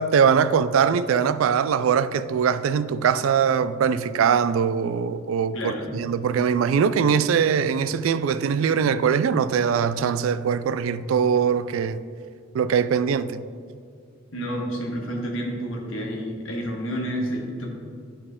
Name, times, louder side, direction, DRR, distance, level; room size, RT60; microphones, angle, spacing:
voice 1, 0.0-12.0 12.5-13.4, right 7 dB, 80° right, 0.3 m, -22 dB
voice 2, 5.5-5.9 14.3-17.7, equal, 70° left, 1.5 m, -29 dB
11.0 x 4.2 x 3.7 m
head